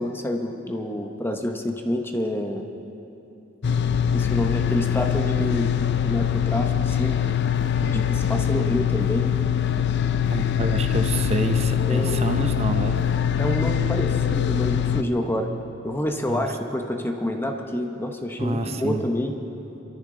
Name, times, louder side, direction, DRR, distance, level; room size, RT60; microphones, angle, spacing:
voice 1, 0.0-2.6 4.1-7.2 8.1-9.3 11.9-12.3 13.4-15.5 15.8-19.3, left 1 dB, 10° left, 3 dB, 0.8 m, -28 dB
sound 1, 3.6-15.0, left 8 dB, 55° left, 0.5 m, -23 dB
voice 2, 10.3-13.0 16.3-16.5 18.4-19.0, right 2 dB, 30° right, 7 dB, 0.7 m, -27 dB
26.5 x 13.5 x 3.8 m, 2.8 s
head